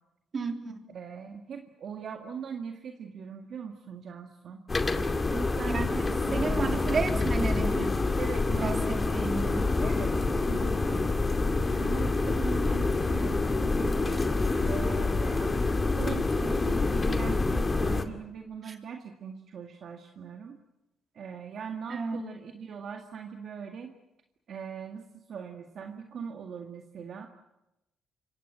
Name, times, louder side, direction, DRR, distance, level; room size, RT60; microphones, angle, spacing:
voice 1, 0.3-0.8 5.7-7.9 8.6-9.5 18.7-18.8 21.9-22.2, right 4 dB, 45° right, 4 dB, 3.6 m, -32 dB
voice 2, 0.9-4.6 5.3-5.9 6.3-7.5 8.2-9.1 9.4-11.1 11.7-14.3 14.6-20.6 21.1-24.0 24.5-27.3, right 6 dB, 60° right, 3 dB, 2.0 m, -41 dB
sound 1, 4.7-18.0, left 3 dB, 25° left, 2.3 m, -27 dB
26.5 x 23.5 x 7.7 m, 0.94 s
cardioid pair, 90°, 0 cm